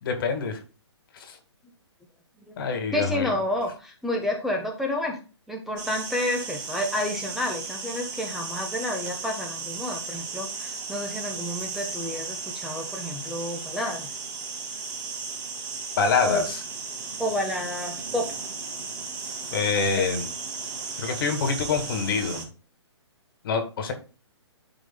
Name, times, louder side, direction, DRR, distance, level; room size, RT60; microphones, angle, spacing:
voice 1, 0.0-0.6 1.2-1.4 2.6-3.3 16.0-16.6 19.5-20.3 21.0-22.5 23.4-23.9, left 5 dB, 50° left, 6 dB, 2.0 m, -26 dB
voice 2, 2.9-5.2 5.5-14.1 16.2-16.5 17.2-18.3 20.0-20.1, left 1 dB, ahead, 2 dB, 1.2 m, -30 dB
sound 1, 5.8-22.4, right 4 dB, 40° right, 2.2 m, -35 dB
12.0 x 4.7 x 2.3 m, 0.34 s
figure-of-eight pair, 130°, 15 cm